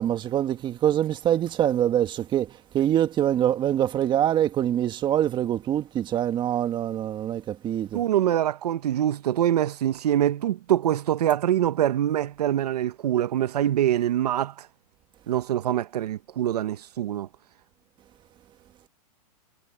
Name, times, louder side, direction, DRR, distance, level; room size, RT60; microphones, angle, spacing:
voice 1, 0.0-8.0, right 11 dB, 25° right, 1.6 m, -24 dB
voice 2, 7.9-14.7 15.3-17.3, right 11 dB, 80° right, 1.1 m, -24 dB
hypercardioid pair, 140°, 20 cm